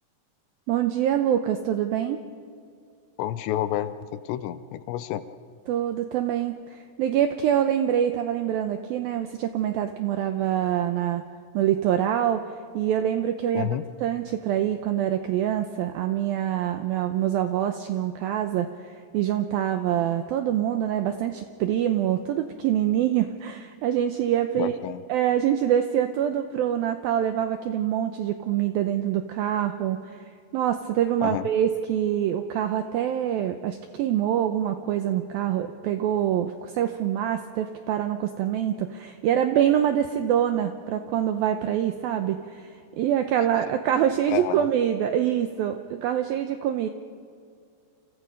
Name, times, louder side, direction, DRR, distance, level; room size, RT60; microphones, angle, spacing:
voice 1, 0.7-2.3 5.7-11.2 11.5-13.7 14.0-24.7 25.1-46.9, right 10 dB, 85° right, 8 dB, 2.1 m, -25 dB
voice 2, 3.2-5.2 13.5-13.8 24.6-25.0 31.2-31.5 44.3-44.7, left 12 dB, 80° left, 13 dB, 2.9 m, -29 dB
29.0 x 27.5 x 5.3 m, 2.4 s
omnidirectional pair, 5.2 m